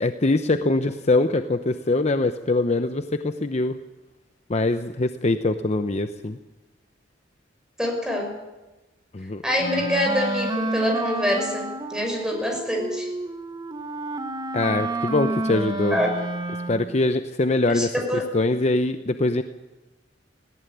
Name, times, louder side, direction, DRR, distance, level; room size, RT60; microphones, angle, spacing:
voice 1, 0.0-3.8 4.5-6.4 9.1-9.4 14.5-16.0 16.7-17.9 18.3-19.4, left 2 dB, 35° left, 9 dB, 0.8 m, -23 dB
voice 2, 7.8-8.3 9.4-13.1 15.9-16.1 17.7-18.2, equal, 5° right, 2 dB, 5.9 m, -25 dB
Wind instrument woodwind instrument, 9.6-17.0, right 2 dB, 25° right, 1.3 m, -30 dB
18.0 x 17.5 x 9.3 m, 1.1 s
head